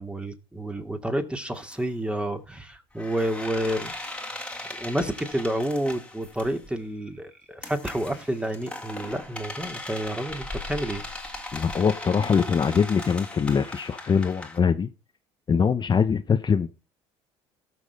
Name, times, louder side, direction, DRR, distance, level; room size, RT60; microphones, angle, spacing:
voice 1, 0.0-3.9 4.8-11.0, right 1 dB, 10° right, 2.3 m, -29 dB
sound 1, 1.6-1.8 3.0-6.7 7.6-14.6, left 2 dB, 10° left, 2.2 m, -38 dB
voice 2, 11.5-14.9 15.5-16.7, left 6 dB, 35° left, 0.9 m, -23 dB
18.5 x 6.3 x 3.5 m
hypercardioid pair, 70°, 14 cm